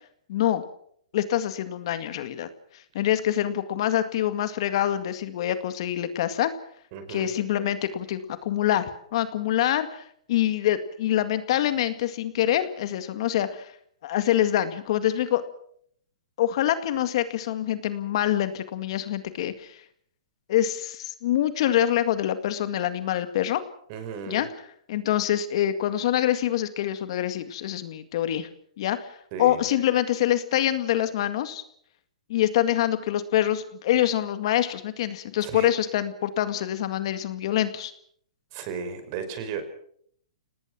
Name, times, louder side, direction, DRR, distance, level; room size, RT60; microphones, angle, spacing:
voice 1, 0.3-0.6 1.1-2.5 2.7-6.5 7.1-13.7 14.0-15.4 16.4-19.8 20.5-23.6 24.3-24.5 24.9-28.5 28.8-31.6 32.3-37.9, left 12 dB, 55° left, 10 dB, 2.0 m, -25 dB
voice 2, 6.9-7.3 23.9-24.5 29.3-29.6 35.4-35.7 38.5-39.6, right 6 dB, 40° right, 9 dB, 5.1 m, -34 dB
28.5 x 19.0 x 6.2 m, 0.65 s
hypercardioid pair, 145°, 4 cm